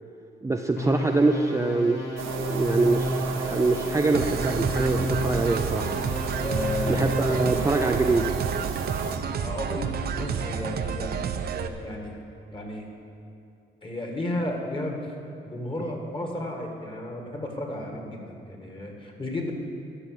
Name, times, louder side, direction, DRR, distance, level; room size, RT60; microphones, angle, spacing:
voice 1, 0.4-2.2 2.5-5.9 6.9-8.3, right 3 dB, 15° right, 4 dB, 0.5 m, -24 dB
sound 1, 0.8-8.3, left 1 dB, 75° left, 3.3 m, -31 dB
sound 2, 2.2-9.2, right 7 dB, 85° right, 0.9 m, -34 dB
sound 3, 4.1-11.7, right 6 dB, 55° right, 0.7 m, -30 dB
voice 2, 6.4-7.5 9.2-11.2 11.5-12.1 12.5-12.9 13.8-15.1 15.5-19.5, left 1 dB, 25° left, 1 dB, 2.0 m, -33 dB
12.5 x 5.6 x 7.9 m, 2.6 s
cardioid pair, 90°, 20 cm